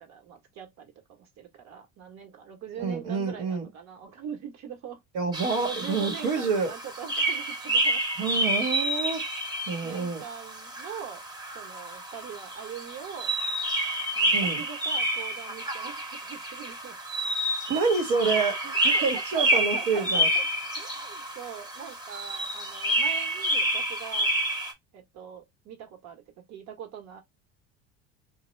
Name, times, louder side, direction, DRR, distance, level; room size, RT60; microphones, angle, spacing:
voice 1, 0.0-5.0 5.6-8.0 8.8-8.9 9.8-11.2 11.5-13.3 14.1-17.0 18.9-20.5 20.8-24.3 24.9-27.2, right 7 dB, 55° right, 1.1 m, -42 dB
voice 2, 2.8-3.6 5.1-6.7 8.2-9.2 9.7-10.2 14.3-14.6 17.7-20.3, right 4 dB, 75° right, 1.2 m, -28 dB
sound 1, 5.3-24.7, right 1 dB, 15° right, 0.8 m, -29 dB
3.0 x 2.3 x 3.1 m
supercardioid pair, 110°, 32 cm